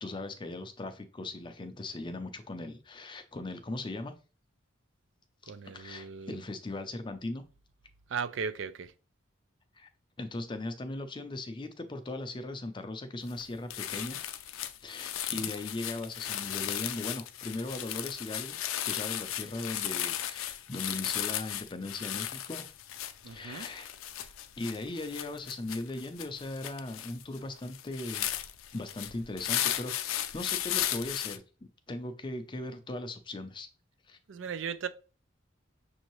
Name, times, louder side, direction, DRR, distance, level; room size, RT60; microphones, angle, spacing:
voice 1, 0.0-4.1 5.7-7.4 9.8-9.9 10.2-14.2 14.8-18.6 18.8-22.7 23.2-23.9 24.6-28.4 28.7-31.4 31.9-33.7 34.1-34.2, left 2 dB, 25° left, 0.5 m, -38 dB
voice 2, 5.5-6.4 8.1-8.9 15.4-15.5 23.2-23.7 34.3-34.9, right 6 dB, 65° right, 0.4 m, -37 dB
sound 1, 13.3-13.4 13.7-31.4, left 11 dB, 85° left, 0.4 m, -35 dB
6.2 x 2.7 x 3.0 m
head